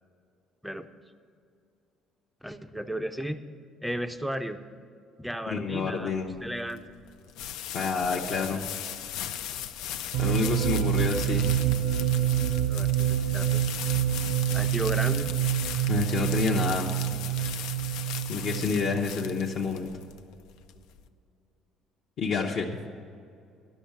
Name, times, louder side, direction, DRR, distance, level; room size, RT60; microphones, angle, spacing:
voice 1, 2.4-3.4 3.8-4.6 5.2-6.1 6.4-6.8 8.1-8.2 12.7-13.9 14.5-15.4, equal, ahead, 9 dB, 0.5 m, -34 dB
voice 2, 5.5-6.3 7.7-8.7 10.2-11.5 15.9-17.0 18.3-19.9 22.2-22.8, left 5 dB, 45° left, -1 dB, 0.8 m, -28 dB
sound 1, 6.2-21.1, left 10 dB, 90° left, 0.6 m, -38 dB
sound 2, 10.1-19.8, right 12 dB, 75° right, 0.4 m, -27 dB
11.5 x 6.4 x 8.5 m, 2.4 s
cardioid pair, 170°, 0 cm